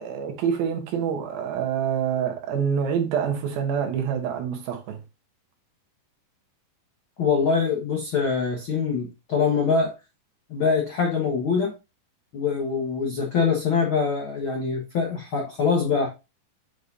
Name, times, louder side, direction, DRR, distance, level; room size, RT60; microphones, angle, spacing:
voice 1, 0.0-5.0, right 8 dB, 85° right, 3.1 m, -26 dB
voice 2, 7.2-9.9 10.5-11.7 12.3-16.1, left 5 dB, 55° left, 1.5 m, -24 dB
7.7 x 5.1 x 2.7 m
omnidirectional pair, 4.1 m